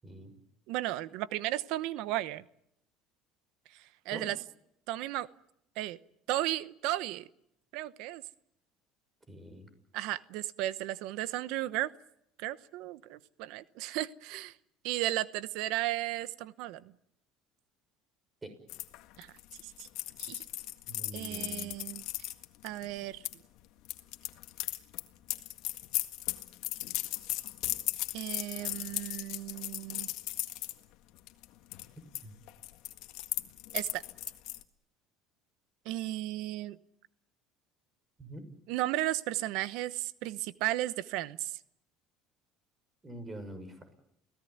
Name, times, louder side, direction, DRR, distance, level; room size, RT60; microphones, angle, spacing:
voice 1, 0.0-0.3 4.1-4.3 9.3-9.7 18.4-18.5 20.9-21.7 32.2-32.3 38.2-38.4 43.0-43.9, right 1 dB, 20° right, 9 dB, 6.2 m, -45 dB
voice 2, 0.7-2.4 3.7-4.4 4.9-5.3 5.8-6.0 6.3-7.3 7.7-8.2 9.9-11.9 12.4-14.5 14.8-16.8 19.2-19.3 19.6-19.9 20.2-20.4 21.1-22.0 22.6-23.2 28.1-30.1 33.7-34.0 35.8-36.8 38.7-41.5, right 15 dB, 70° right, 15 dB, 1.0 m, -34 dB
sound 1, 18.7-23.3 23.8-30.7 31.2-31.4 31.7-32.2 32.5-34.6, left 17 dB, 70° left, 1.8 m, -37 dB
29.5 x 17.5 x 9.5 m, 0.78 s
supercardioid pair, 110°, 0 cm